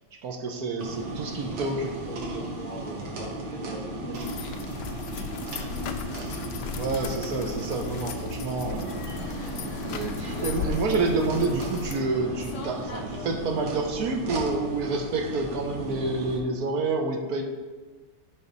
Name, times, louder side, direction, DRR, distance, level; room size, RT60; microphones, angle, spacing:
voice 1, 0.2-2.0 6.8-9.0 9.8-17.4, right 3 dB, 60° right, 4 dB, 1.1 m, -28 dB
sound 1, 0.8-16.4, right 1 dB, 80° right, 2.0 m, -36 dB
voice 2, 1.9-5.9, right 1 dB, 10° left, -3 dB, 0.7 m, -43 dB
sound 2, 4.1-12.0, left 7 dB, 70° left, 1.1 m, -37 dB
Fixed-wing aircraft airplane, 8.9-14.0, left 3 dB, 50° left, 1.1 m, -40 dB
10.0 x 5.4 x 4.0 m, 1.3 s
omnidirectional pair, 2.1 m